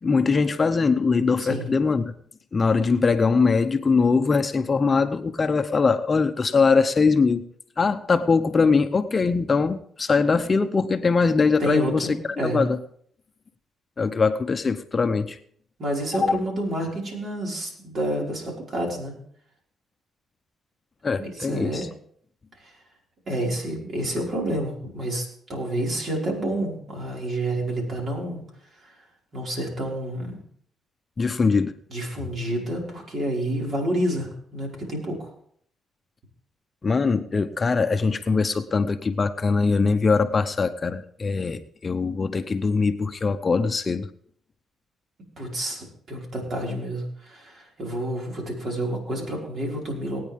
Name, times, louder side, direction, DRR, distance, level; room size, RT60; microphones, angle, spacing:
voice 1, 0.0-2.1 2.5-7.4 7.8-12.1 12.4-12.8 14.0-15.4 21.0-21.9 31.2-31.7 36.8-44.1, left 4 dB, 35° left, 9 dB, 0.7 m, -22 dB
voice 2, 11.6-12.6 15.8-19.1 21.2-21.8 22.6-22.7 23.3-28.4 28.8-29.0 29.3-30.4 31.9-35.3 45.4-50.2, right 1 dB, 50° right, -1 dB, 5.2 m, -29 dB
19.0 x 9.4 x 3.6 m, 0.62 s
cardioid pair, 90°, 0 cm